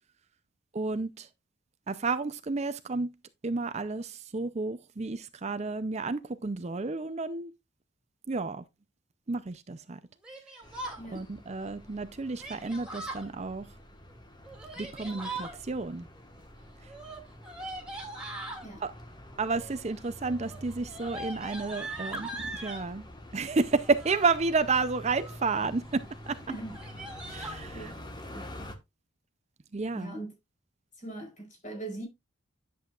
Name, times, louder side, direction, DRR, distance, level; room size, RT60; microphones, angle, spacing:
voice 1, 0.7-1.3 1.9-3.1 3.4-7.5 8.3-8.6 9.3-10.0 11.1-13.7 14.8-16.1 16.8-16.9 18.8-18.9 19.4-23.1 23.3-26.4 27.2-27.9 29.7-30.1, right 4 dB, 30° right, 0.5 m, -31 dB
Yell, 10.2-11.0 12.4-13.3 14.4-15.6 16.9-18.7 19.5-19.9 20.2-22.9 23.8-24.4 24.9-25.5 25.9-26.0 26.2-26.4 26.7-27.6, right 2 dB, 5° right, 2.5 m, -40 dB
sound 1, 10.6-28.8, left 1 dB, 20° left, 1.3 m, -47 dB
voice 2, 26.5-26.8 27.7-27.9 28.3-28.5 29.9-30.3 31.0-32.1, right 2 dB, 35° left, 5.0 m, -40 dB
10.5 x 7.7 x 2.4 m
head